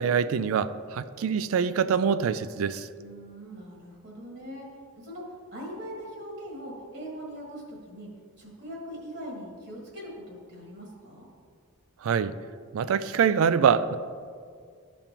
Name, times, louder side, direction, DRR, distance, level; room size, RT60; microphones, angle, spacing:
voice 1, 0.0-2.9 12.0-12.3 12.7-14.0, right 7 dB, 70° right, 14 dB, 0.3 m, -24 dB
voice 2, 3.0-4.7 4.9-8.1 8.4-11.2, equal, 50° right, -2 dB, 1.6 m, -41 dB
12.5 x 5.2 x 2.9 m, 2.1 s
head